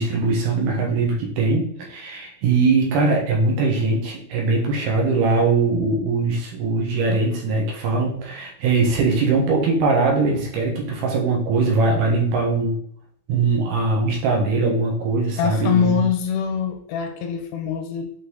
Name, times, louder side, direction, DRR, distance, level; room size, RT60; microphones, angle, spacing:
voice 1, 0.0-12.8 13.3-16.0, right 3 dB, 65° right, -1 dB, 3.3 m, -21 dB
voice 2, 15.4-18.1, left 7 dB, 80° left, 6 dB, 2.9 m, -23 dB
8.7 x 4.6 x 3.9 m, 0.64 s
omnidirectional pair, 5.1 m